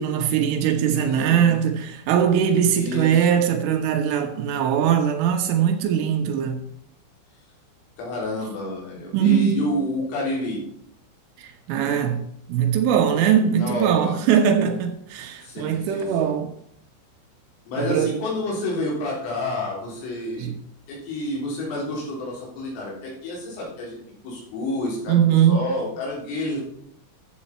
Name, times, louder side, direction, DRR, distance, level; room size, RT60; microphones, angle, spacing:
voice 1, 0.0-6.6 9.1-9.7 11.4-12.2 12.5-16.5 17.8-18.1 20.4-20.5 25.1-25.6, right 8 dB, 80° right, 3.5 m, -21 dB
voice 2, 0.8-1.6 2.7-3.4 8.0-10.6 13.6-14.2 15.4-16.3 17.7-20.5 20.9-24.0 24.2-26.6, left 1 dB, 85° left, 6.3 m, -29 dB
11.0 x 8.3 x 4.3 m
omnidirectional pair, 5.8 m